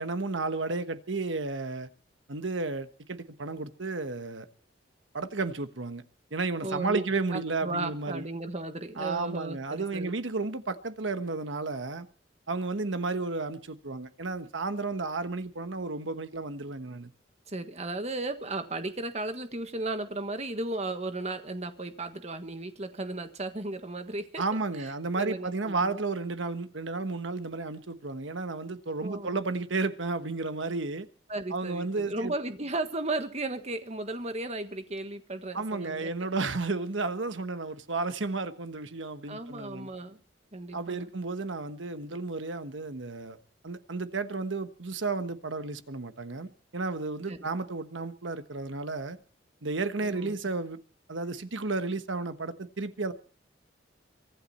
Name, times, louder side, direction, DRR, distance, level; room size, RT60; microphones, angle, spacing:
voice 1, 0.0-1.9 2.3-4.5 5.1-6.0 6.3-8.3 9.0-12.1 12.5-17.1 24.4-31.1 31.5-32.3 35.5-39.9 40.7-43.4 43.6-49.2 49.6-50.8 51.1-53.1, right 3 dB, 85° right, 1.2 m, -32 dB
voice 2, 6.6-7.0 7.3-10.1 17.5-24.4 24.8-24.9 25.2-26.0 29.0-29.4 31.3-36.3 39.3-40.2 40.5-41.1 47.3-47.5 50.0-50.4, right 2 dB, 35° right, 1.5 m, -35 dB
24.0 x 11.5 x 4.3 m
head